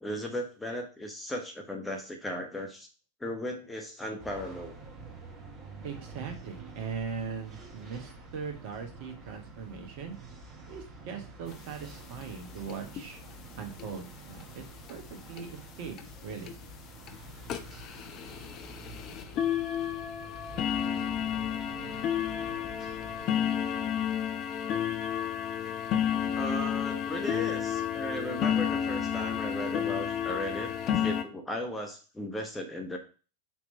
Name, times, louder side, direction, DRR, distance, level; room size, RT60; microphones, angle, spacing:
voice 1, 0.0-2.9 3.2-4.7 26.4-33.0, left 1 dB, 10° left, 3 dB, 1.1 m, -36 dB
sound 1, 4.2-23.3, right 2 dB, 30° right, 1.3 m, -48 dB
voice 2, 5.8-10.2 10.7-13.2 13.6-15.9 16.2-16.5, right 6 dB, 45° right, 4 dB, 1.1 m, -40 dB
sound 2, 11.5-11.6 11.9-12.0 12.2-12.4 12.7-13.0 13.8-13.9 14.4-14.5 14.9-15.0 15.4-15.5 16.0-16.1 16.5-16.7 17.1-17.2 17.5-31.2, left 9 dB, 35° left, 0.6 m, -31 dB
5.9 x 3.0 x 5.4 m, 0.35 s
figure-of-eight pair, 90°, 0 cm